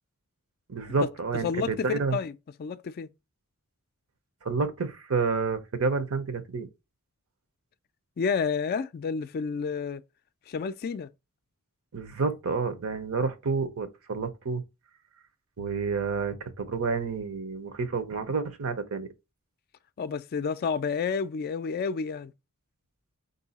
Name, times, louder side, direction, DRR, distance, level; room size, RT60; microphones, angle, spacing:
voice 1, 0.7-2.2 4.4-6.7 11.9-14.6 15.6-19.1, right 4 dB, 70° right, 0.8 m, -29 dB
voice 2, 1.4-2.3 2.6-3.1 8.2-10.0 10.5-11.1 20.0-22.3, left 5 dB, 45° left, 0.3 m, -30 dB
4.7 x 2.7 x 3.9 m
head